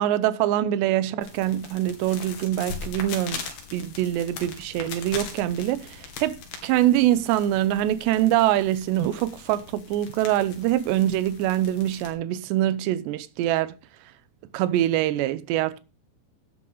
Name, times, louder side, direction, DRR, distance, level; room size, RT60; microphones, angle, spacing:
voice 1, 0.0-6.4 6.6-13.7 14.5-15.8, right 13 dB, 85° right, 3.0 m, -24 dB
sound 1, 1.2-12.1, left 6 dB, 60° left, 4.3 m, -40 dB
12.5 x 10.0 x 4.0 m
omnidirectional pair, 5.0 m